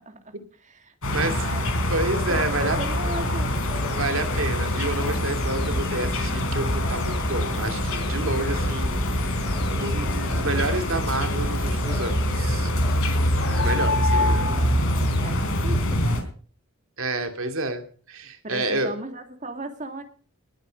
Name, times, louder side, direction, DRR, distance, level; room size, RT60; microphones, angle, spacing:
voice 1, 0.1-1.9 2.3-3.6 14.2-14.4 15.2-16.2 18.4-20.0, right 2 dB, 35° right, 6 dB, 2.3 m, -37 dB
sound 1, 1.0-16.2, left 1 dB, 65° left, 3.9 m, -24 dB
voice 2, 1.9-2.8 3.9-9.0 9.7-12.7 13.5-14.4 17.0-18.9, right 2 dB, 65° right, 6 dB, 2.5 m, -29 dB
sound 2, 3.1-15.7, left 3 dB, 45° left, 1.2 m, -38 dB
20.0 x 9.1 x 5.2 m, 0.44 s
head